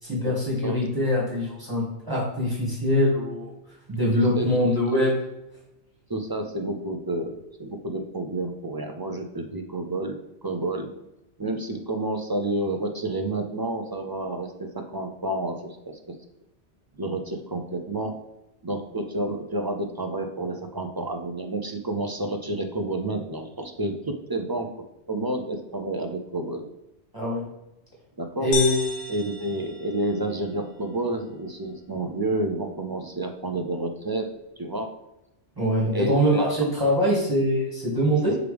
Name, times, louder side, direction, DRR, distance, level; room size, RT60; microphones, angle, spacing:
voice 1, 0.0-3.5 3.9-5.1 27.1-27.4 28.4-29.1 35.6-38.4, equal, 20° right, -6 dB, 2.1 m, -23 dB
voice 2, 6.1-10.2 10.4-10.9 11.4-16.2 17.0-18.2 18.6-26.7 28.2-28.5 29.1-34.9 35.9-36.5, right 1 dB, 35° right, 4 dB, 0.3 m, -30 dB
sound 1, 28.5-30.5, left 4 dB, 70° left, 1.1 m, -33 dB
6.3 x 4.8 x 3.4 m, 0.91 s
omnidirectional pair, 1.2 m